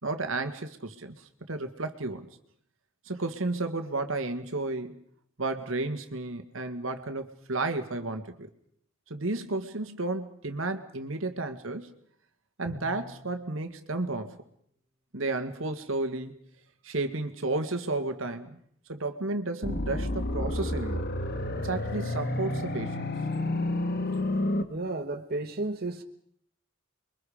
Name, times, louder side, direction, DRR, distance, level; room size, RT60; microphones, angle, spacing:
voice 1, 0.0-1.2 1.5-2.3 3.1-5.0 5.4-8.5 9.1-11.9 12.6-14.4 15.1-16.4 16.8-18.6 18.9-21.1 21.6-23.0, right 2 dB, 85° right, 2.0 m, -32 dB
Bowed string instrument, 12.6-13.5, left 2 dB, 20° left, 3.4 m, -45 dB
sound 1, 19.6-24.6, left 1 dB, 55° left, 1.7 m, -30 dB
voice 2, 24.7-26.0, right 2 dB, 50° right, 1.3 m, -32 dB
28.5 x 23.0 x 5.1 m
head